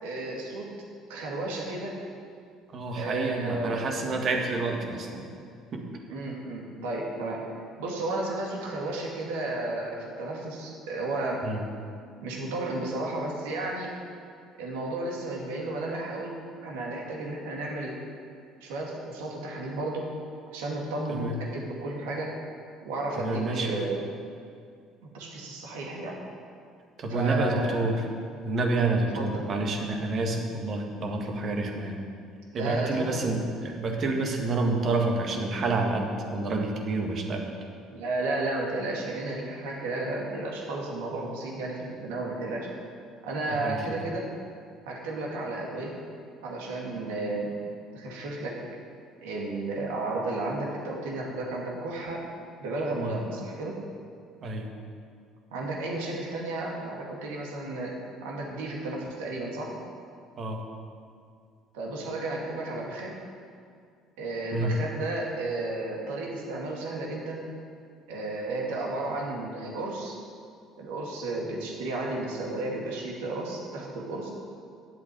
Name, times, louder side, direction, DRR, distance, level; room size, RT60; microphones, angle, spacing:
voice 1, 0.0-0.7 1.1-2.0 3.0-3.9 6.1-7.4 7.8-11.4 12.2-13.9 14.6-16.3 16.6-18.0 18.6-20.1 20.5-22.3 22.8-24.0 25.1-26.2 27.1-28.0 29.1-29.4 32.5-33.4 37.9-42.7 43.2-44.3 44.9-46.0 46.4-47.5 47.9-48.6 49.2-52.2 52.6-53.8 55.5-57.9 58.2-59.7 61.7-63.1 64.2-67.4 68.1-70.2 70.8-74.3, right 2 dB, 80° right, -2 dB, 2.3 m, -33 dB
voice 2, 2.7-5.3 5.7-5.8 11.4-11.6 21.1-21.4 23.2-23.8 27.0-28.0 28.4-32.0 32.5-37.5 43.5-44.0 53.0-53.1 54.4-54.7 60.4-60.6 64.5-64.7, right 3 dB, 50° right, 2 dB, 1.9 m, -28 dB
9.2 x 8.1 x 7.7 m, 2.3 s
hypercardioid pair, 60°, 0 cm